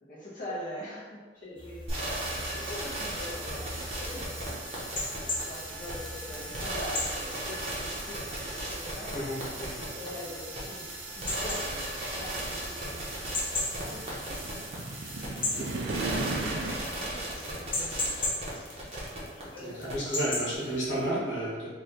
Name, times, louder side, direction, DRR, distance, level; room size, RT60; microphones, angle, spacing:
voice 1, 0.0-4.6 5.4-9.3 9.8-10.8 11.1-13.1 13.7-14.8 15.1-18.1 19.4-20.1, left 1 dB, 45° left, -10 dB, 1.2 m, -44 dB
sound 1, 1.6-21.1, left 2 dB, 30° left, 0.6 m, -39 dB
sound 2, 1.9-19.4 19.8-19.9, right 1 dB, 35° right, 0.8 m, -36 dB
voice 2, 9.1-9.8 15.6-15.9 19.6-21.7, right 1 dB, 85° left, -7 dB, 1.4 m, -32 dB
sound 3, 9.6-9.7 10.7-16.8, right 2 dB, 65° right, 0.4 m, -37 dB
3.1 x 2.7 x 4.0 m, 1.4 s
head